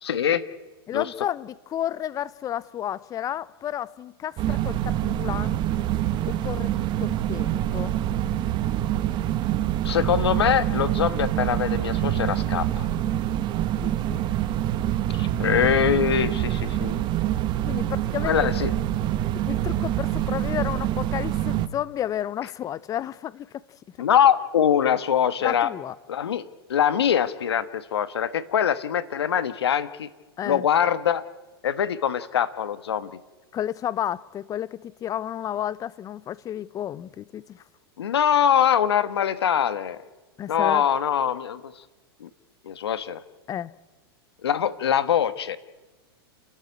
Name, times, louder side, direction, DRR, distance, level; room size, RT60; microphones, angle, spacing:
voice 1, 0.0-0.4 0.9-1.0 9.8-12.9 15.1-17.0 18.2-18.7 24.0-25.7 26.1-26.4 26.7-30.1 30.4-31.2 31.6-33.1 38.0-40.0 40.5-41.6 42.2-42.3 42.6-43.2 44.4-45.6, left 9 dB, 85° left, 1.4 m, -23 dB
voice 2, 0.9-5.6 6.3-7.9 13.8-14.3 17.7-18.5 19.3-23.5 25.4-26.0 30.4-30.7 33.5-37.6 40.4-40.9 43.5-43.7, left 11 dB, 25° left, 0.8 m, -32 dB
sound 1, 4.4-21.7, right 12 dB, 35° right, 1.2 m, -26 dB
30.0 x 13.0 x 8.3 m
hypercardioid pair, 120°, 13 cm